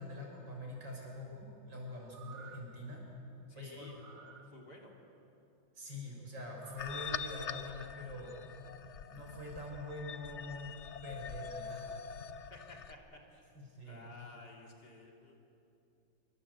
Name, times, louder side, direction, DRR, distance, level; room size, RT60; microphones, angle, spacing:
voice 1, 0.0-3.0 3.5-3.9 5.8-8.3 9.1-10.7 11.0-11.9 13.6-14.0, left 1 dB, 60° right, -1 dB, 7.0 m, -44 dB
sound 1, 2.0-2.8 3.8-4.5 6.6-7.3 7.7-7.8, right 6 dB, 45° right, 1.8 m, -54 dB
voice 2, 3.5-5.0 12.5-13.5 13.8-15.4, left 2 dB, 50° left, 0 dB, 3.6 m, -54 dB
sound 2, 6.8-12.9, left 7 dB, 75° left, 0.6 m, -44 dB
26.5 x 24.0 x 8.2 m, 2.7 s
omnidirectional pair, 2.2 m